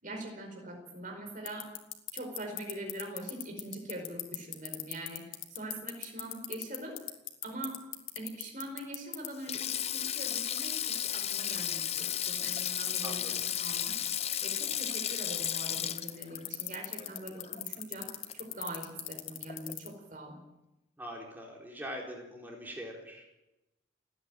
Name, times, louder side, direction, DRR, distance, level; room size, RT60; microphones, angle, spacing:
voice 1, 0.0-1.7 2.1-7.0 7.4-7.8 8.1-14.0 14.4-20.4, right 1 dB, 45° right, 3 dB, 4.8 m, -43 dB
sound 1, 1.5-9.3 9.5-9.6 12.1-19.9, left 16 dB, 85° left, 2.1 m, -36 dB
Sink (filling or washing), 9.3-17.8 18.1-18.3 19.5-19.7, left 10 dB, 30° left, 0.7 m, -34 dB
voice 2, 13.0-13.4 21.0-23.3, equal, 10° right, -1 dB, 4.1 m, -43 dB
29.0 x 10.0 x 9.2 m, 0.95 s
head